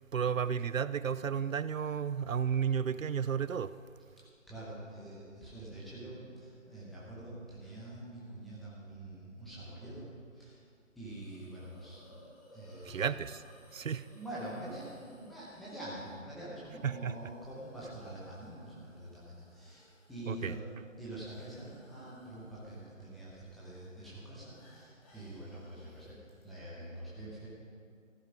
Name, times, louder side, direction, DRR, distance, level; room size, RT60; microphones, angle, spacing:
voice 1, 0.1-3.8 12.8-13.4 13.7-14.1 16.8-17.3 20.3-20.6, right 7 dB, 80° right, 16 dB, 0.6 m, -33 dB
voice 2, 4.2-10.6 10.9-13.1 14.0-20.6 21.0-27.5, right 1 dB, ahead, -9 dB, 0.9 m, -46 dB
Hiss, 11.0-26.4, left 1 dB, 25° left, 3.2 m, -63 dB
14.5 x 12.5 x 5.1 m, 2.2 s
figure-of-eight pair, 150°, 39 cm